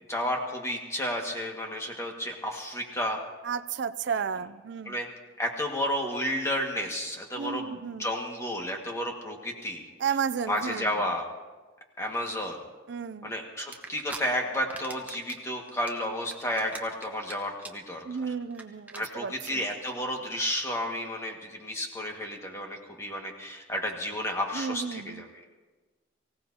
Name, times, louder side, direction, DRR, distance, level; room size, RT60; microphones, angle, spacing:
voice 1, 0.1-3.2 4.8-5.1 5.4-9.9 10.5-11.3 12.0-12.6 13.2-18.3 19.0-25.3, equal, 15° left, 1 dB, 1.8 m, -32 dB
voice 2, 3.4-5.0 7.4-8.1 10.0-10.9 12.9-13.3 18.0-19.6 24.5-25.3, right 6 dB, 65° right, 14 dB, 0.4 m, -33 dB
sound 1, 13.7-14.2 14.5-15.4 15.7-17.3 17.6-17.9 18.2-18.3 18.5-18.6 18.9-19.0 19.4-19.5, right 3 dB, 10° right, 0.9 m, -40 dB
24.0 x 16.5 x 2.9 m, 1.3 s
head